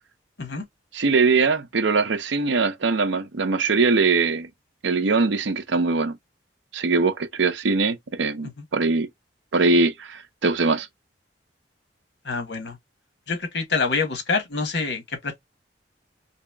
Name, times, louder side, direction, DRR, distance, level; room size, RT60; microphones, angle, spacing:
voice 1, 0.9-4.5 4.8-6.2 6.7-9.1 9.5-10.9, right 4 dB, 75° right, 0.6 m, -22 dB
voice 2, 12.2-12.8 13.3-15.4, left 4 dB, 65° left, 1.0 m, -26 dB
2.9 x 2.8 x 3.4 m
head